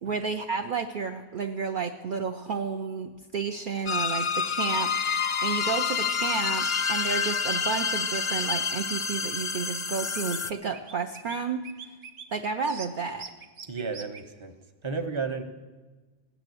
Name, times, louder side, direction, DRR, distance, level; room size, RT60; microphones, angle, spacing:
voice 1, 0.0-11.7 12.3-13.3, right 5 dB, 55° right, 5 dB, 0.8 m, -31 dB
sound 1, 3.9-10.5, left 5 dB, 40° left, 0.5 m, -28 dB
sound 2, 6.1-7.1 8.2-9.1 9.8-9.9 10.1-10.4 10.7-11.4 11.6-12.2 12.6-14.2, right 6 dB, 70° right, 1.2 m, -44 dB
voice 2, 13.7-14.6 14.8-15.4, right 4 dB, 30° right, 8 dB, 1.0 m, -32 dB
17.0 x 10.5 x 7.8 m, 1.3 s
omnidirectional pair, 1.1 m